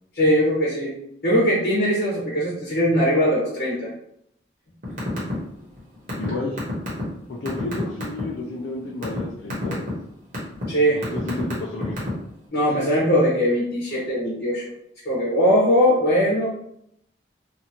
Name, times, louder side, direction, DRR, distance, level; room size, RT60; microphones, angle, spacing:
voice 1, 0.1-0.9 1.2-3.9 10.7-11.0 12.5-14.6 15.0-16.5, equal, 55° left, -8 dB, 1.0 m, -20 dB
sound 1, 4.8-5.4 5.6-8.2 8.7-9.2 9.5-9.9 10.3-10.6 11.0-12.3, equal, 45° right, 1.1 m, -30 dB
voice 2, 6.2-6.6 7.3-9.9 10.9-12.1, left 2 dB, 90° left, -2 dB, 0.5 m, -31 dB
2.7 x 2.5 x 2.8 m, 0.75 s
head